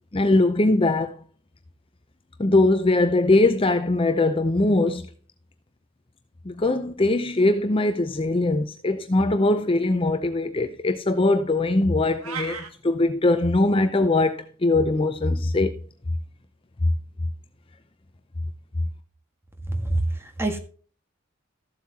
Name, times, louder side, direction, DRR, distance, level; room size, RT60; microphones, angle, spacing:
voice 1, 0.1-1.2 2.4-5.1 6.5-15.8, left 2 dB, 25° left, 0.6 m, -21 dB
sound 1, 12.2-12.7, right 5 dB, 90° right, 1.7 m, -33 dB
voice 2, 19.7-20.6, right 2 dB, 10° right, 1.6 m, -26 dB
14.0 x 7.7 x 2.8 m
head